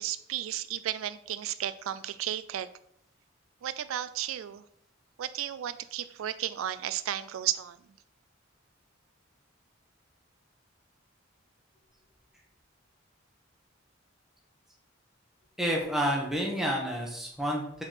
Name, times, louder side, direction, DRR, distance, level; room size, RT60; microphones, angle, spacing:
voice 1, 0.0-2.7 3.6-4.6 5.2-7.8, right 11 dB, 80° right, 14 dB, 0.3 m, -33 dB
voice 2, 15.6-17.8, equal, ahead, -2 dB, 1.4 m, -29 dB
5.2 x 4.3 x 5.7 m, 0.74 s
head